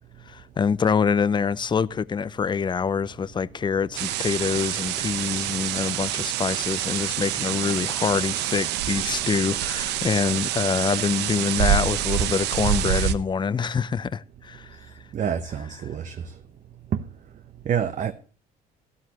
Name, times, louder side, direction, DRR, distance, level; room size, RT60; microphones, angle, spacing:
voice 1, 0.3-14.8, left 6 dB, 25° left, 0.6 m, -25 dB
sound 1, 4.0-13.1, right 12 dB, 85° right, 1.0 m, -26 dB
voice 2, 15.1-16.3 16.9-17.0 17.6-18.1, right 8 dB, 45° right, 1.0 m, -27 dB
14.0 x 13.0 x 3.0 m
cardioid pair, 110°, 17 cm